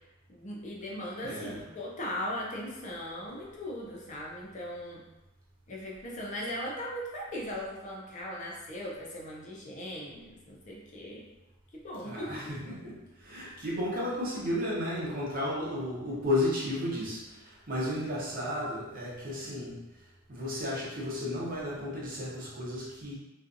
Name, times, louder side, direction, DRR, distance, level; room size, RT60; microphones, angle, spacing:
voice 1, 0.3-5.0 5.7-11.3 11.7-12.5, left 1 dB, 35° left, -3 dB, 0.5 m, -38 dB
voice 2, 0.9-1.6 12.0-19.8 20.3-23.1, left 1 dB, 45° right, -6 dB, 0.8 m, -33 dB
2.5 x 2.3 x 2.5 m, 0.98 s
head